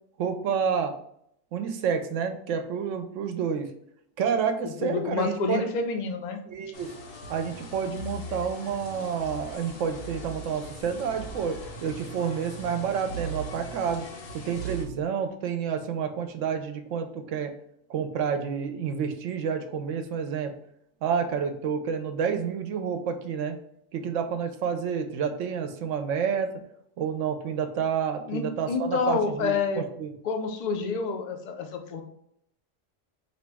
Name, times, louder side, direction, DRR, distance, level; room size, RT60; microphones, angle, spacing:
voice 1, 0.2-0.9 1.5-3.7 4.2-5.7 6.5-6.9 7.3-14.1 14.3-17.5 17.9-20.5 21.0-23.6 23.9-26.5 27.0-30.1, right 7 dB, 75° right, 6 dB, 0.9 m, -29 dB
voice 2, 4.6-6.4 28.3-29.8 30.2-32.0, left 5 dB, 55° left, 5 dB, 0.5 m, -28 dB
sound 1, 6.7-14.8, right 2 dB, 85° left, 1.2 m, -40 dB
4.0 x 2.9 x 3.4 m, 0.71 s
omnidirectional pair, 1.3 m